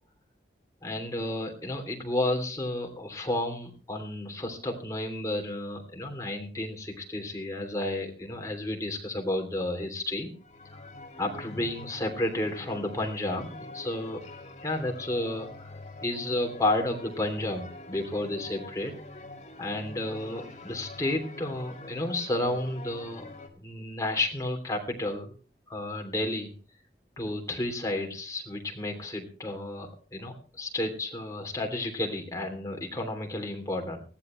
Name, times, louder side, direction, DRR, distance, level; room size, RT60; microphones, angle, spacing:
voice 1, 0.8-10.3 10.7-10.8 11.2-14.2 14.6-15.7 16.0-18.9 19.6-23.3 23.6-25.3 25.7-26.5 27.2-34.0, left 1 dB, 20° left, 2 dB, 3.1 m, -32 dB
sound 1, 10.4-23.5, left 2 dB, 40° left, 2.2 m, -45 dB
20.0 x 14.5 x 3.2 m, 0.38 s
head